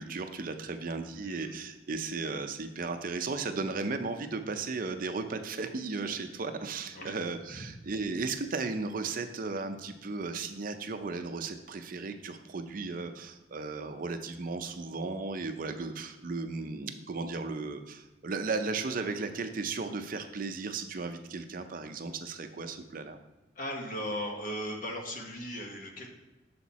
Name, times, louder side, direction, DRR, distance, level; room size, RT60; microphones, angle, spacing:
voice 1, 0.0-23.2, right 4 dB, 50° right, 7 dB, 0.5 m, -35 dB
voice 2, 1.2-1.5 6.9-7.1 7.5-7.7 23.5-26.1, equal, 50° left, 1 dB, 1.2 m, -37 dB
7.0 x 4.3 x 4.1 m, 1.1 s
head